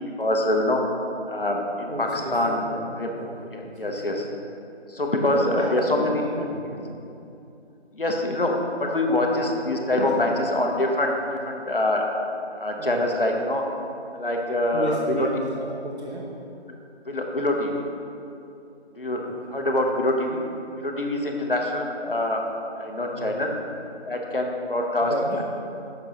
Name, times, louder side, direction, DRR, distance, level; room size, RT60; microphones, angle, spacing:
voice 1, 0.2-0.9 1.3-2.6 3.0-3.1 3.5-4.3 4.9-6.2 6.7-6.8 7.9-11.1 11.4-12.0 12.5-13.6 14.1-15.3 17.0-17.8 18.9-20.4 20.8-22.4 22.8-23.5 24.1-25.4, left 1 dB, 55° left, 1 dB, 0.9 m, -25 dB
voice 2, 1.9-2.8 3.2-4.2 5.3-6.9 9.1-9.3 9.8-10.0 12.7-13.1 14.7-16.3 23.1-23.4 25.0-25.4, right 1 dB, 75° right, -2 dB, 1.1 m, -33 dB
7.2 x 6.4 x 2.9 m, 2.7 s
figure-of-eight pair, 175°, 34 cm